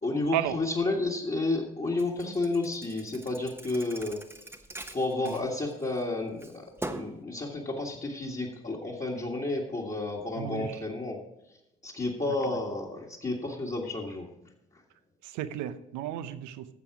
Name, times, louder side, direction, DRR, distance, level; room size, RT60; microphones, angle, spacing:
voice 1, 0.0-4.2 4.8-6.7 6.9-11.2 11.8-14.3, left 2 dB, 25° left, -5 dB, 1.9 m, -31 dB
Thump thud, 2.0-6.0 6.4-7.2, right 1 dB, 10° right, 1.0 m, -42 dB
voice 2, 10.4-10.8 15.2-16.7, right 12 dB, 70° right, 12 dB, 0.8 m, -33 dB
12.5 x 7.1 x 4.8 m, 0.83 s
hypercardioid pair, 55°, 30 cm